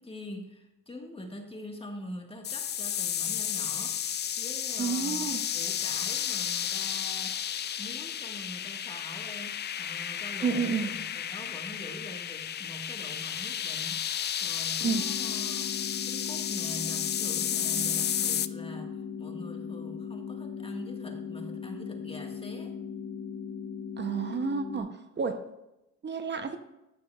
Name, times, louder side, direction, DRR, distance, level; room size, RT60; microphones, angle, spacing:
voice 1, 0.0-7.4 7.8-15.7 16.0-22.7, left 1 dB, 20° left, 2 dB, 1.7 m, -44 dB
sound 1, 2.4-18.5, left 9 dB, 35° left, 0.4 m, -32 dB
voice 2, 4.8-5.4 10.4-10.9 14.8-15.0 17.8-17.9 24.0-25.4 26.0-26.6, right 5 dB, 35° right, 8 dB, 0.8 m, -30 dB
sound 2, 14.8-24.8, left 6 dB, 80° left, 2.2 m, -39 dB
14.0 x 6.7 x 2.4 m, 0.94 s
cardioid pair, 90°, 30 cm